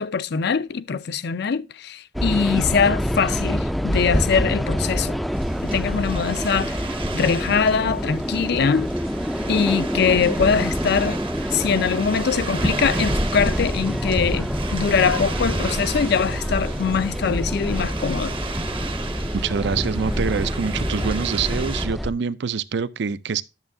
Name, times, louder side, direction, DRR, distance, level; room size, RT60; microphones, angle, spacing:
voice 1, 0.0-5.2 5.6-6.8 7.1-8.9 9.5-11.2 11.5-18.3, left 6 dB, 60° left, 0.5 m, -22 dB
sound 1, 2.1-22.1, equal, ahead, 0.4 m, -26 dB
sound 2, 5.3-21.9, right 3 dB, 30° right, 0.7 m, -34 dB
voice 2, 19.3-23.4, right 6 dB, 65° right, 0.5 m, -25 dB
10.5 x 6.8 x 2.6 m
head